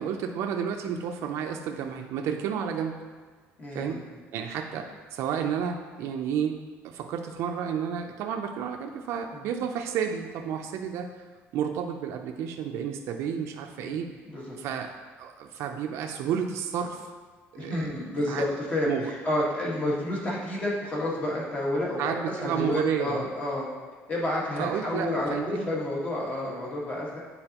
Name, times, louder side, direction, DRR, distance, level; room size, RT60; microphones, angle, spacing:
voice 1, 0.0-2.9 3.7-4.0 4.3-6.6 6.8-11.1 11.5-14.1 14.6-17.1 17.6-17.9 18.3-18.4 18.9-19.1 22.0-23.3 24.6-25.7, right 8 dB, 70° right, 4 dB, 0.5 m, -31 dB
voice 2, 3.6-4.0 9.3-9.4 13.8-14.0 14.2-14.6 17.5-23.6 24.1-27.2, left 1 dB, 30° left, -5 dB, 1.6 m, -30 dB
8.7 x 4.0 x 2.9 m, 1.4 s
cardioid pair, 150°, 5 cm